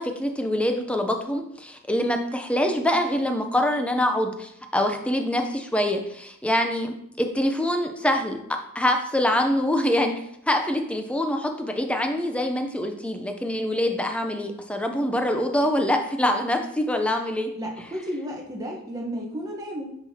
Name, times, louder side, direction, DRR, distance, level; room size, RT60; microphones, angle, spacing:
voice 1, 0.0-8.4 8.7-10.1 10.5-17.5, left 1 dB, 5° left, 5 dB, 0.5 m, -25 dB
voice 2, 17.5-20.0, equal, 15° right, -2 dB, 1.0 m, -33 dB
6.0 x 5.9 x 2.8 m, 0.73 s
head